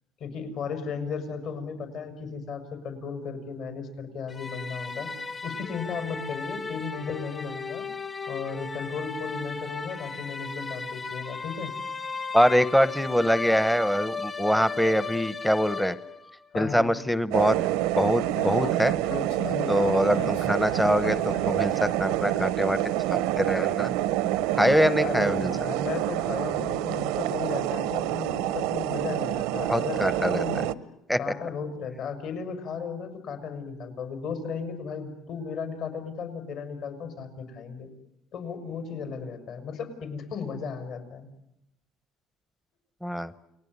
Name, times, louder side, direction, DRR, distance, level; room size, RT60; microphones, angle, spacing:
voice 1, 0.2-5.1 5.4-7.9 8.3-11.7 16.5-16.9 19.4-20.3 25.0-30.7 31.2-37.9 38.3-41.3, left 5 dB, 60° left, 7 dB, 6.1 m, -35 dB
sound 1, 4.3-16.4, left 4 dB, 25° left, 1.5 m, -36 dB
voice 2, 12.3-16.0 16.5-17.7 17.9-18.9 19.7-22.8 23.1-23.9 24.6-25.5 29.7-30.4 31.1-31.2 43.0-43.3, equal, 5° left, 14 dB, 0.9 m, -24 dB
sound 2, 17.3-30.7, right 14 dB, 90° right, 1.0 m, -27 dB
Speech, 18.3-21.7, left 6 dB, 85° left, 1.9 m, -40 dB
29.5 x 20.0 x 9.6 m, 0.86 s
cardioid pair, 125°, 0 cm